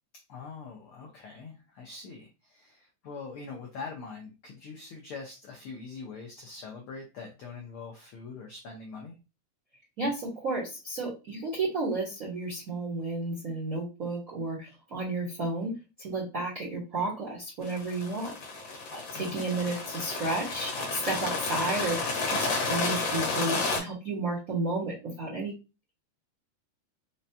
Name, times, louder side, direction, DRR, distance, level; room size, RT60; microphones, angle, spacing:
voice 1, 0.3-9.2 19.1-19.4, left 4 dB, 85° left, 0 dB, 1.2 m, -43 dB
voice 2, 10.0-15.7 16.0-18.3 18.9-25.5, right 2 dB, 65° right, -5 dB, 0.8 m, -32 dB
sound 1, 17.6-23.8, left 3 dB, 65° left, 1.9 m, -31 dB
5.0 x 2.2 x 2.7 m, 0.29 s
omnidirectional pair, 3.3 m